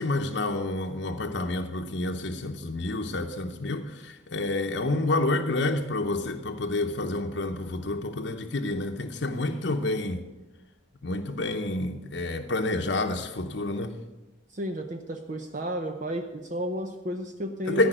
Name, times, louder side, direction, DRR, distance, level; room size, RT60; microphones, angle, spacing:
voice 1, 0.0-10.2 11.0-14.0 17.7-17.9, left 2 dB, 60° left, 3 dB, 0.8 m, -29 dB
voice 2, 14.5-17.9, equal, 40° right, 4 dB, 0.8 m, -32 dB
14.0 x 5.3 x 9.0 m, 1.1 s
head